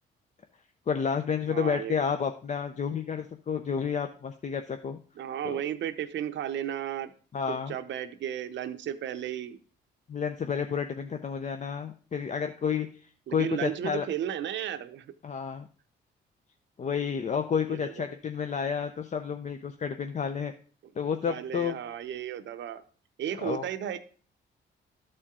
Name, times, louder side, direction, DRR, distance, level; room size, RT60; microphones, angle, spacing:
voice 1, 0.9-5.0 5.4-5.6 7.3-7.8 10.1-14.1 15.2-15.7 16.8-20.5 21.0-21.8 23.4-23.7, left 6 dB, 35° left, 7 dB, 0.6 m, -30 dB
voice 2, 1.5-2.0 5.2-7.1 7.5-9.6 13.3-15.1 17.7-18.1 21.3-22.8 23.2-24.0, right 10 dB, 65° right, 10 dB, 0.7 m, -34 dB
12.5 x 4.4 x 3.7 m, 0.41 s
cardioid pair, 90°, 20 cm